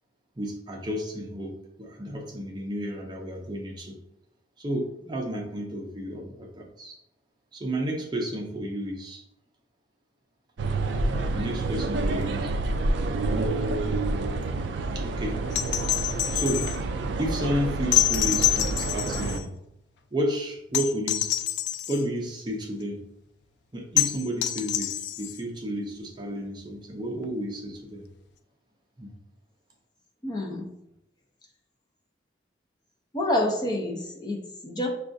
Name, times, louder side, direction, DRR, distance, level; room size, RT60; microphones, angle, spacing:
voice 1, 0.4-4.0 4.6-7.0 7.5-9.2 11.3-12.5 14.9-15.4 16.3-16.7 17.2-19.5 20.1-21.3 21.9-23.0 23.7-28.1 29.0-29.1, equal, 25° right, 1 dB, 0.5 m, -32 dB
sound 1, 10.6-19.4, right 2 dB, 80° right, 0.3 m, -28 dB
sound 2, 15.5-16.8 17.9-19.4 20.7-22.0 24.0-25.4 27.2-27.3, left 12 dB, 75° left, 0.3 m, -26 dB
voice 2, 30.2-30.7 33.1-34.9, left 1 dB, 25° left, 0 dB, 0.5 m, -28 dB
6.1 x 2.3 x 2.6 m, 0.81 s
head